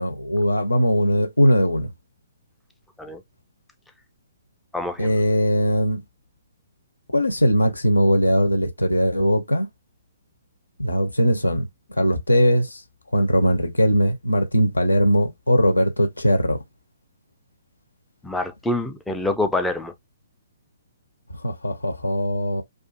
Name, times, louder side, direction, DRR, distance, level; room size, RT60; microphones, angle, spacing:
voice 1, 0.0-1.9 5.0-6.0 7.1-9.7 10.8-11.7 12.0-12.8 13.1-16.6 21.4-22.6, equal, 80° left, 0.7 m, -20 dB
voice 2, 4.7-5.1 18.2-19.9, left 2 dB, 5° left, 0.4 m, -26 dB
2.5 x 2.4 x 2.5 m
figure-of-eight pair, 125°, 0 cm